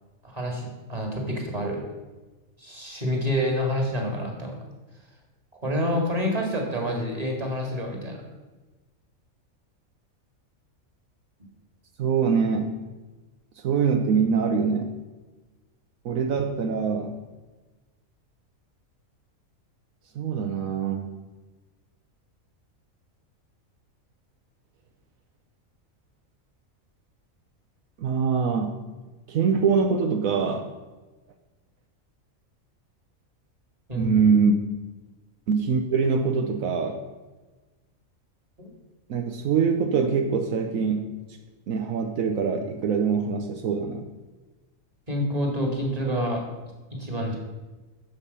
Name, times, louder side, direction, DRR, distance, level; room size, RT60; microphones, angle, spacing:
voice 1, 0.2-1.9 2.6-4.6 5.6-8.2 33.9-34.1 38.6-38.7 45.1-46.4 46.9-47.4, equal, 25° right, 1 dB, 2.1 m, -28 dB
voice 2, 12.0-12.7 13.6-15.0 16.0-17.2 20.1-21.2 28.0-28.8 29.3-30.7 34.0-34.6 35.5-37.0 39.1-41.1 41.7-44.1, right 5 dB, 75° right, 5 dB, 1.2 m, -24 dB
11.0 x 7.3 x 5.5 m, 1.2 s
omnidirectional pair, 1.5 m